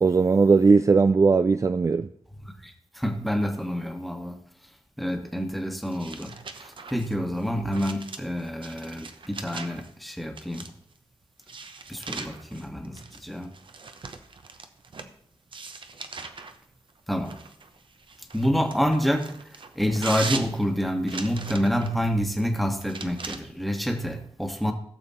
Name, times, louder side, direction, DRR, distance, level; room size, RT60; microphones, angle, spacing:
voice 1, 0.0-2.1, right 4 dB, 30° right, 0.3 m, -19 dB
voice 2, 2.6-4.4 5.0-10.7 11.9-13.5 17.1-17.4 18.3-19.3 19.7-24.7, equal, ahead, 1.4 m, -28 dB
sound 1, 5.9-9.9 10.4-10.9 11.4-15.1 15.5-16.6 17.2-22.0 22.8-23.4, right 4 dB, 55° right, 1.0 m, -39 dB
16.0 x 7.0 x 4.2 m
wide cardioid pair, 110°, 10 cm